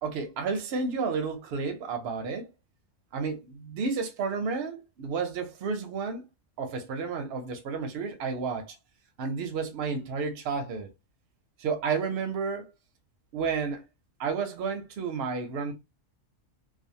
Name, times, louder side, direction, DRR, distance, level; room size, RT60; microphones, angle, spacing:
voice 1, 0.0-2.5 3.1-6.2 6.6-8.8 9.2-10.9 11.6-12.7 13.3-13.8 14.2-15.7, right 5 dB, 60° right, 0.7 m, -31 dB
2.4 x 2.4 x 2.6 m
omnidirectional pair, 1.3 m